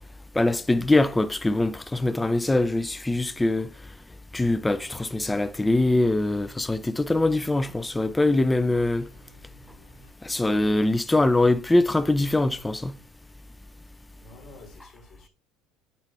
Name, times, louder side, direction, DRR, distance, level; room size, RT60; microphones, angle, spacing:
voice 1, 0.4-3.7 4.3-9.1 10.2-13.0, left 2 dB, 10° left, 0.4 m, -23 dB
sound 1, 4.8-10.1, right 2 dB, 80° left, 2.3 m, -54 dB
voice 2, 14.2-15.3, left 2 dB, 50° left, 2.9 m, -49 dB
9.6 x 4.2 x 3.0 m
supercardioid pair, 120°, 0 cm